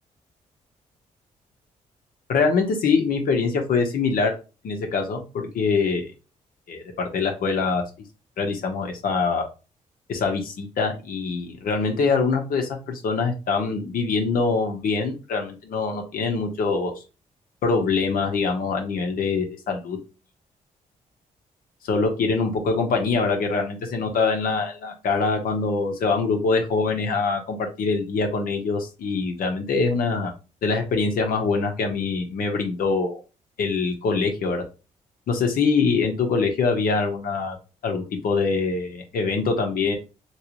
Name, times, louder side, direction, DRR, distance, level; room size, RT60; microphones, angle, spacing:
voice 1, 2.3-4.3 4.6-6.1 6.7-7.8 8.4-9.5 10.1-16.9 17.6-20.0 21.9-30.3 30.6-33.2 33.6-34.6 35.3-37.6 37.8-39.9, left 4 dB, 70° left, 3 dB, 1.0 m, -24 dB
3.2 x 3.1 x 2.9 m, 0.30 s
cardioid pair, 65°, 15 cm